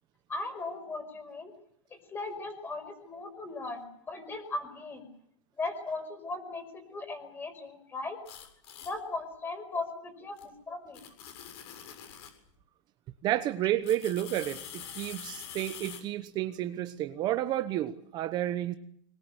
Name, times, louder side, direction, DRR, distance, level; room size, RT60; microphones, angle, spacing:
voice 1, 0.3-1.5 1.9-5.1 5.6-8.2 8.8-11.0, left 3 dB, 10° left, 5.6 m, -38 dB
sound 1, 8.3-8.9 10.4-10.5 10.9-12.4 13.8-16.0, left 9 dB, 55° left, 7.4 m, -45 dB
voice 2, 13.2-18.7, right 13 dB, 25° right, 1.1 m, -31 dB
25.0 x 22.0 x 8.2 m
supercardioid pair, 160°, 17 cm